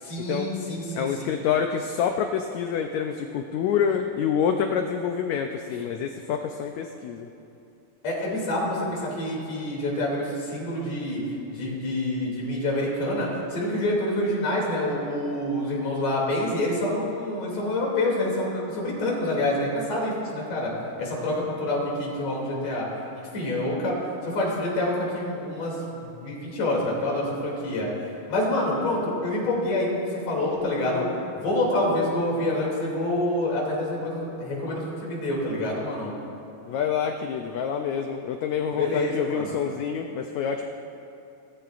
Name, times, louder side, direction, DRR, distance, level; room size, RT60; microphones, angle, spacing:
voice 1, 0.0-1.3 8.0-11.2 11.5-20.7 21.0-22.9 23.3-24.0 24.2-27.9 28.3-31.0 31.3-36.1 38.7-39.6, left 1 dB, 50° left, -4 dB, 3.7 m, -27 dB
voice 2, 0.9-7.3 36.7-40.7, left 7 dB, 90° left, 5 dB, 1.6 m, -27 dB
20.5 x 13.5 x 2.5 m, 2.7 s
omnidirectional pair, 3.9 m